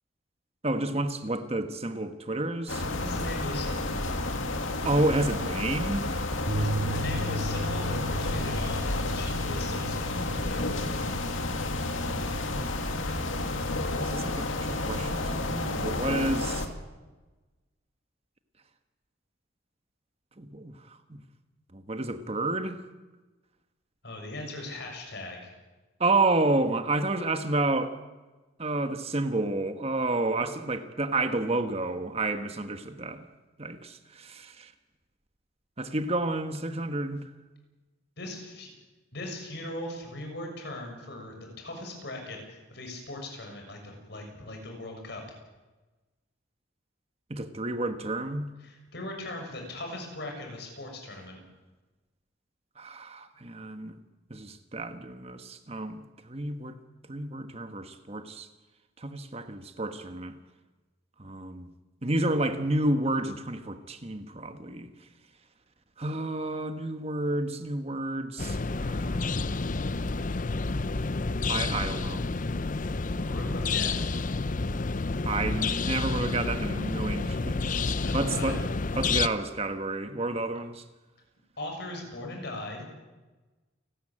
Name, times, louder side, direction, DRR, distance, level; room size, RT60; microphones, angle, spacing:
voice 1, 0.6-2.9 4.8-6.1 14.0-16.7 20.4-21.2 21.7-22.8 26.0-28.0 28.6-33.3 33.6-34.7 35.8-37.2 47.3-48.5 52.8-54.0 54.3-56.8 57.1-58.5 59.0-60.3 61.2-61.7 62.0-64.9 66.0-69.3 71.5-72.3 75.3-78.6 78.9-80.8, right 2 dB, 30° right, 8 dB, 1.3 m, -30 dB
sound 1, 2.7-16.7, left 2 dB, 90° left, 2.3 m, -31 dB
voice 2, 3.0-3.9 6.5-10.6 24.0-25.5 38.2-38.7 39.1-45.2 48.6-51.4 73.2-74.1 77.7-78.6 81.6-82.8, left 1 dB, 60° left, 2 dB, 6.6 m, -39 dB
sound 2, 6.5-12.7, equal, 50° right, 2.0 m, -36 dB
sound 3, 68.4-79.3, left 3 dB, 40° left, 0.6 m, -29 dB
29.0 x 13.0 x 8.8 m, 1.2 s
head